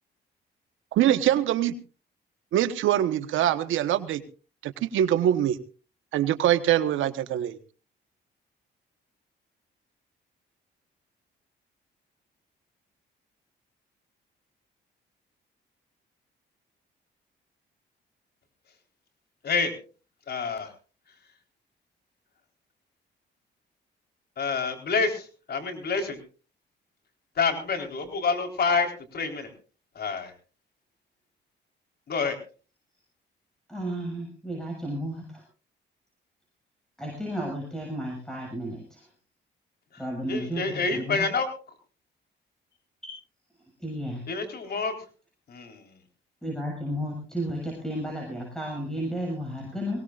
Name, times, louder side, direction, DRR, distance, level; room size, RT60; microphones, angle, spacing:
voice 1, 0.9-1.7 2.5-4.2 4.6-5.6 6.1-7.6, right 11 dB, 80° right, 11 dB, 1.3 m, -23 dB
voice 2, 20.3-20.7 24.4-25.2 25.5-26.2 27.4-28.9 29.1-29.5 30.0-30.3 32.1-32.4 40.3-41.5 44.3-44.9 45.5-45.8, left 4 dB, 55° left, 5 dB, 4.1 m, -27 dB
voice 3, 33.7-35.4 37.0-39.1 40.0-41.3 43.0-43.2 43.8-44.2 46.4-50.0, equal, 5° left, 0 dB, 7.0 m, -33 dB
22.5 x 18.0 x 2.5 m, 0.36 s
cardioid pair, 90°, 20 cm